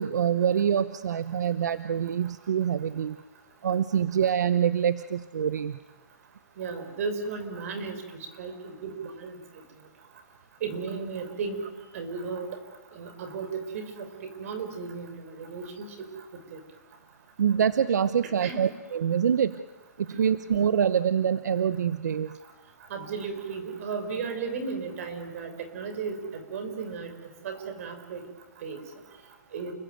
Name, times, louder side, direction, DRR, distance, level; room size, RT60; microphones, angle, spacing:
voice 1, 0.0-3.2 3.6-5.8 17.4-19.5 20.2-22.3, right 8 dB, 85° right, 13 dB, 0.9 m, -25 dB
voice 2, 6.6-8.0 8.4-9.4 10.6-11.6 11.9-12.5 12.9-16.1 16.5-16.6 18.4-18.7 20.1-20.2 22.9-27.1 27.4-28.2 28.6-28.8 29.5-29.7, right 5 dB, 55° right, 8 dB, 5.6 m, -35 dB
29.5 x 22.0 x 9.2 m, 1.2 s
hypercardioid pair, 155°, 9 cm